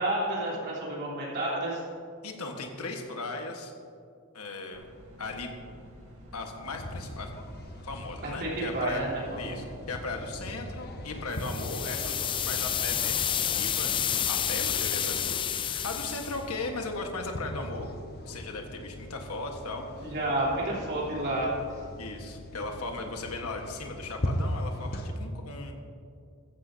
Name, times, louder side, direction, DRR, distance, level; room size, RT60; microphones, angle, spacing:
voice 1, 0.0-1.8 8.2-9.6 20.0-21.6, right 1 dB, 50° right, -6 dB, 3.5 m, -30 dB
voice 2, 2.2-3.7 4.3-4.8 5.2-5.5 6.3-7.3 7.8-9.0 9.4-17.9 18.2-20.1 22.0-25.7, left 3 dB, 90° left, 3 dB, 1.4 m, -37 dB
sound 1, 4.7-14.9, equal, 70° right, 3.0 m, -49 dB
sound 2, 6.6-25.1, equal, 50° left, 1.1 m, -40 dB
sound 3, 11.4-16.4, left 9 dB, 25° left, 0.3 m, -29 dB
15.0 x 15.0 x 2.8 m, 2.3 s
head